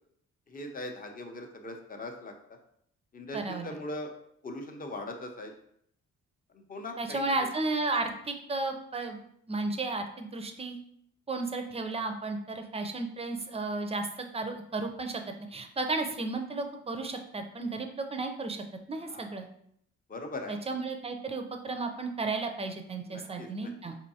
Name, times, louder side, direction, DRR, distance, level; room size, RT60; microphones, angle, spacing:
voice 1, 0.5-2.3 3.1-4.1 4.4-5.5 6.7-7.3 19.1-19.3 20.1-20.6 23.1-23.7, left 1 dB, 30° left, 3 dB, 0.7 m, -40 dB
voice 2, 3.3-3.7 7.0-9.2 9.5-10.8 11.3-14.1 14.3-15.2 15.5-19.5 20.5-24.0, right 3 dB, 20° right, 5 dB, 0.5 m, -33 dB
4.4 x 2.7 x 2.7 m, 0.70 s
cardioid pair, 90°, 30 cm